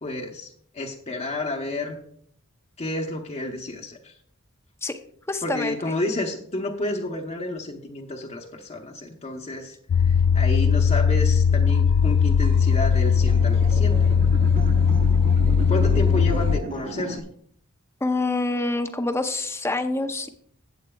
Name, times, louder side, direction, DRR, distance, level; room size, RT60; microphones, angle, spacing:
voice 1, 0.0-2.0 2.8-4.1 5.4-14.1 15.7-17.2, left 2 dB, 30° left, 0 dB, 0.9 m, -31 dB
voice 2, 5.3-5.7 18.0-20.3, left 2 dB, 10° left, 8 dB, 0.6 m, -26 dB
sound 1, 9.9-16.6, left 6 dB, 55° left, 0.3 m, -19 dB
sound 2, 12.4-17.2, right 2 dB, 40° right, 0.9 m, -34 dB
16.5 x 8.1 x 2.3 m, 0.63 s
head